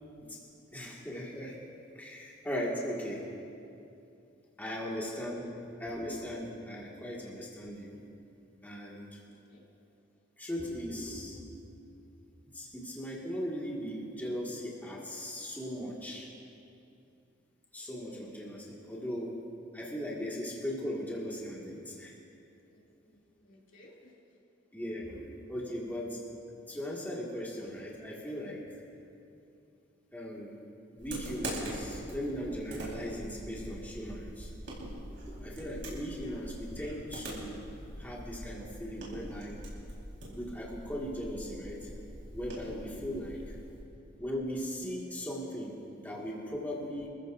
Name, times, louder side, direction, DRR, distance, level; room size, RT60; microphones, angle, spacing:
voice 1, 0.7-1.5 1.9-3.3 4.6-5.5 5.8-8.0 8.6-9.2 10.4-11.6 12.5-16.3 17.7-19.4 19.7-22.1 24.7-26.2 26.7-28.6 30.1-30.6 30.9-34.5 35.1-37.6 38.0-39.6 40.3-41.9 42.3-43.4 44.2-47.1, equal, 10° left, -4 dB, 2.0 m, -38 dB
voice 2, 9.3-9.6 22.6-24.1 36.2-36.4 43.3-43.5, left 2 dB, 85° left, -4 dB, 2.8 m, -59 dB
sound 1, 31.0-43.8, right 1 dB, 70° right, 4.2 m, -43 dB
27.0 x 14.5 x 2.6 m, 2.6 s
head